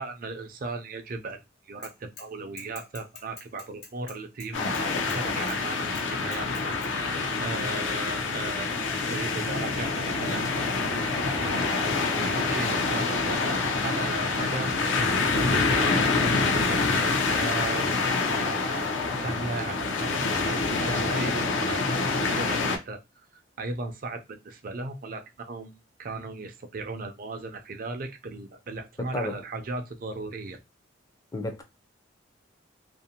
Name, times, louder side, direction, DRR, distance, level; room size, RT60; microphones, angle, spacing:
voice 1, 0.0-8.8 9.1-10.8 11.3-11.9 12.1-16.2 16.7-17.9 19.1-23.0 23.6-30.6, right 3 dB, 45° right, 0.4 m, -37 dB
Bicycle / Mechanisms, 1.8-2.3 2.6-5.2 5.5-5.6 5.9-6.9, left 4 dB, 55° left, 1.0 m, -45 dB
sound 1, 4.5-22.8, left 3 dB, 75° left, 0.6 m, -26 dB
voice 2, 31.3-31.6, left 1 dB, 20° left, 0.4 m, -31 dB
2.5 x 2.1 x 2.7 m
head